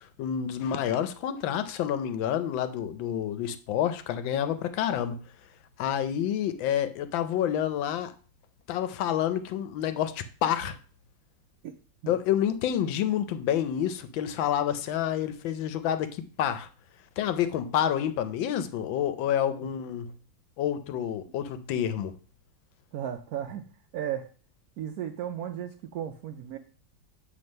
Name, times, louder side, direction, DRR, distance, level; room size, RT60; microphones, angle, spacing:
voice 1, 0.2-5.2 5.8-8.1 8.7-10.8 12.1-16.7 17.2-20.1 20.6-22.1, left 10 dB, 90° left, 10 dB, 1.4 m, -28 dB
voice 2, 22.9-23.6 23.9-24.3 24.8-26.6, right 10 dB, 75° right, 6 dB, 0.8 m, -35 dB
7.7 x 3.4 x 5.3 m, 0.40 s
omnidirectional pair, 2.0 m